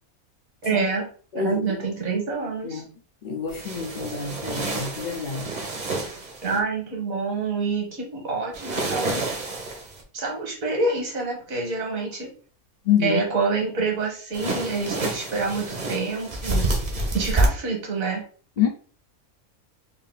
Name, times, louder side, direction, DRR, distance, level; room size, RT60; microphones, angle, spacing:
voice 1, 0.6-1.1 1.3-2.8 6.4-9.2 10.1-12.3 13.0-16.7 17.1-18.2, right 4 dB, 70° right, 1.7 m, -27 dB
voice 2, 1.3-1.8 2.6-2.9 3.2-5.5 5.8-6.0 12.9-13.2 18.6-18.7, left 8 dB, 85° left, 0.4 m, -27 dB
sound 1, 3.5-6.6 8.5-10.0 14.3-17.5, right 2 dB, 40° right, 0.7 m, -28 dB
3.4 x 2.7 x 3.7 m
omnidirectional pair, 1.6 m